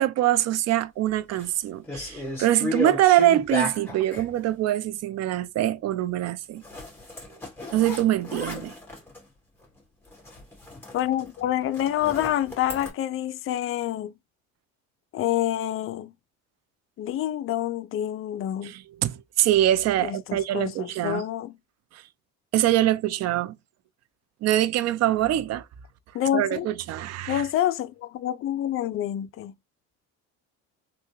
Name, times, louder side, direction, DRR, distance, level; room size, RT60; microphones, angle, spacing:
voice 1, 0.0-6.6 7.7-8.7 18.6-21.2 22.5-23.6 24.4-25.6 26.3-27.4, right 13 dB, 50° right, 0.5 m, -24 dB
sound 1, 1.1-1.5 1.8-4.3 6.6-9.2 9.6-9.8 10.1-12.9, left 1 dB, 5° left, 1.8 m, -34 dB
voice 2, 10.9-14.1 15.1-16.1 17.0-18.7 20.0-21.5 26.1-26.7 27.3-29.5, left 12 dB, 40° left, 0.4 m, -27 dB
3.3 x 2.2 x 3.0 m
cardioid pair, 95°, 32 cm